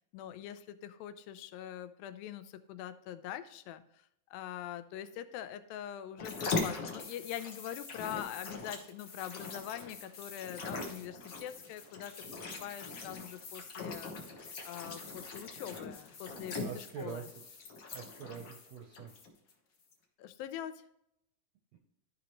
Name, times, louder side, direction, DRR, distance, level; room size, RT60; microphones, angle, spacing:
voice 1, 0.1-3.8 4.3-12.1 12.6-17.3 20.2-20.8, left 11 dB, 90° left, 11 dB, 2.4 m, -43 dB
sound 1, 6.2-19.5 19.9-20.0, left 3 dB, 65° left, 1.2 m, -41 dB
voice 2, 16.6-17.2 17.9-19.1 21.7-21.8, right 8 dB, 75° right, 2 dB, 1.5 m, -44 dB
13.0 x 5.1 x 3.1 m, 0.78 s
omnidirectional pair, 4.1 m